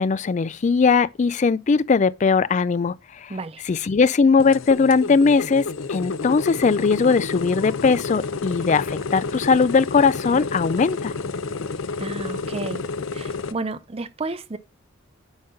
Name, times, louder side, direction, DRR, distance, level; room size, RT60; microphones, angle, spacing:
voice 1, 0.0-2.9 3.6-11.1, left 5 dB, 40° left, 0.3 m, -19 dB
voice 2, 3.3-3.6 12.0-12.9 13.1-14.6, right 3 dB, 30° right, 0.6 m, -31 dB
sound 1, 4.4-13.5, left 4 dB, 90° left, 0.6 m, -30 dB
9.5 x 4.0 x 3.8 m
head